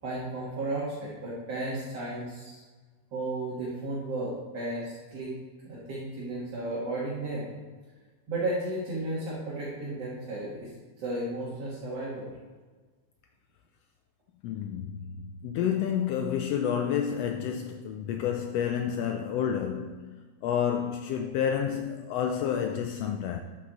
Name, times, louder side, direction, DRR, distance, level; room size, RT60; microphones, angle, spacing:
voice 1, 0.0-2.6 3.1-5.3 5.6-7.5 8.3-10.7 11.0-12.3, right 2 dB, 60° right, 2.8 m, -34 dB
voice 2, 14.4-23.4, left 8 dB, 85° left, 1.4 m, -30 dB
13.0 x 6.4 x 3.8 m
omnidirectional pair, 3.3 m